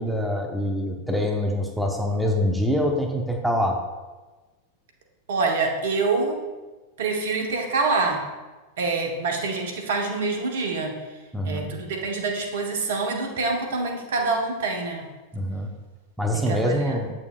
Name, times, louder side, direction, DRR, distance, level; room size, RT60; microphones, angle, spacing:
voice 1, 0.0-3.8 11.3-11.7 15.3-15.7 16.2-17.1, equal, ahead, 1 dB, 0.8 m, -25 dB
voice 2, 5.3-6.4 7.0-8.3 8.8-11.0 11.4-15.1 16.3-17.0, right 3 dB, 60° right, 2 dB, 1.1 m, -26 dB
8.5 x 6.4 x 2.4 m, 1.2 s
figure-of-eight pair, 90°, 0 cm